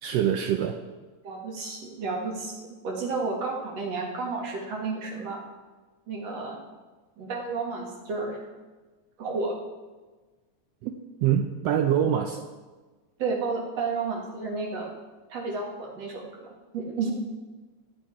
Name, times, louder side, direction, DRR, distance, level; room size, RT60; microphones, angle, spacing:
voice 1, 0.0-0.8 10.8-10.9 11.2-12.4, right 9 dB, 75° right, 4 dB, 1.6 m, -24 dB
voice 2, 1.2-2.6 2.8-5.4 6.1-6.6 7.2-8.4 9.2-9.6 13.2-14.9 15.3-16.5 16.7-17.1, right 4 dB, 60° right, -1 dB, 2.9 m, -31 dB
14.0 x 9.6 x 4.7 m, 1.3 s
omnidirectional pair, 3.3 m